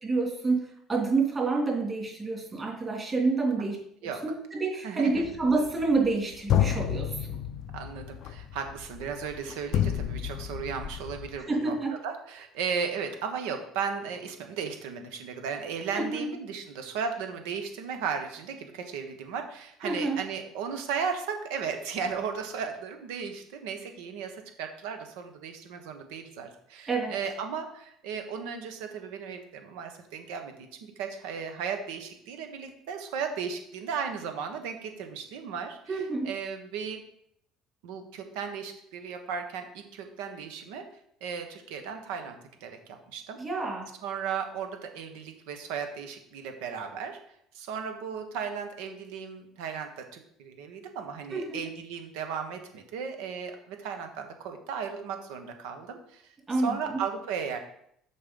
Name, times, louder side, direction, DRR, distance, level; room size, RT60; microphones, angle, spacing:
voice 1, 0.0-3.8 4.2-7.3 11.4-12.0 15.9-16.2 19.8-20.2 26.9-27.1 35.9-36.3 43.4-43.9 51.3-51.6 56.5-57.0, right 3 dB, 30° right, -1 dB, 2.7 m, -28 dB
voice 2, 4.8-5.2 7.7-11.7 12.0-37.0 37.8-40.8 41.2-43.4 44.0-47.2 47.5-56.2 56.5-57.6, right 6 dB, 85° right, 5 dB, 1.2 m, -35 dB
sound 1, 5.2-6.1 6.5-11.4, left 10 dB, 60° left, 0.4 m, -30 dB
6.7 x 4.5 x 5.3 m, 0.71 s
supercardioid pair, 90°, 0 cm